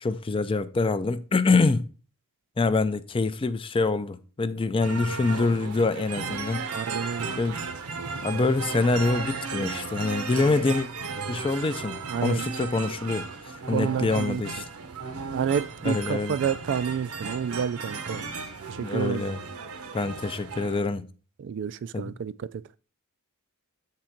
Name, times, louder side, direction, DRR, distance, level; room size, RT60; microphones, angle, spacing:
voice 1, 0.0-1.9 2.6-6.6 7.4-7.6 8.2-10.9 11.3-13.3 13.7-14.6 15.8-16.4 18.8-19.4 19.9-21.0 21.9-22.1, left 3 dB, 25° left, 0.4 m, -25 dB
sound 1, 4.8-20.8, right 4 dB, 75° right, 0.8 m, -35 dB
voice 2, 6.7-7.3 12.1-12.4 13.7-14.4 15.3-18.3 18.7-19.2 21.4-22.5, right 7 dB, 55° right, 0.3 m, -29 dB
7.2 x 3.8 x 4.4 m
head